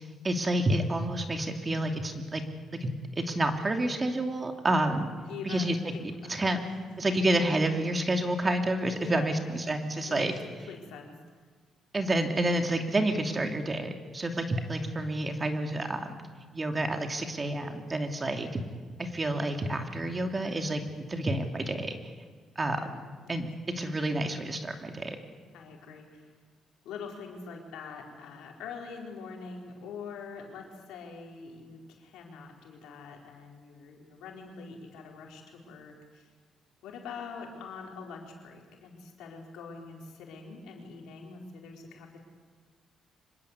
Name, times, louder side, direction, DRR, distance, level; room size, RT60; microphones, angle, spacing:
voice 1, 0.2-2.4 2.8-2.9 3.2-5.1 5.5-5.8 6.3-6.6 7.0-10.3 11.9-16.2 16.5-18.6 19.0-22.0 22.6-22.8 23.3-23.5 23.8-25.2, right 1 dB, 25° right, 5 dB, 2.8 m, -29 dB
voice 2, 5.3-5.7 5.9-6.7 7.1-7.2 9.0-9.7 10.1-10.3 10.7-11.1 22.8-22.9 25.5-26.3 26.8-36.3 36.8-42.2, left 5 dB, 85° left, 0 dB, 4.6 m, -44 dB
25.0 x 20.5 x 8.4 m, 1.5 s
cardioid pair, 90°, 0 cm